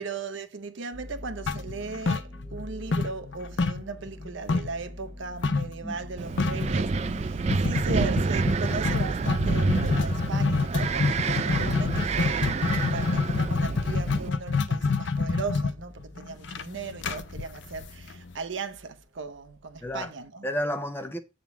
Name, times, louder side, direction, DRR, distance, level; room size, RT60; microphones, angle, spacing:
voice 1, 0.0-20.5, right 4 dB, 65° right, 0.8 m, -37 dB
sound 1, 0.9-20.3, left 1 dB, 15° right, 2.2 m, -45 dB
sound 2, 1.5-2.6 2.9-4.8 5.4-5.7 6.0-6.1 6.4-6.7 7.5-18.3, left 4 dB, 60° left, 0.5 m, -27 dB
Wind, 6.2-14.3, right 4 dB, 35° right, 0.4 m, -28 dB
voice 2, 19.8-20.1 20.4-21.2, equal, 10° left, 0.6 m, -32 dB
7.3 x 3.7 x 5.8 m
head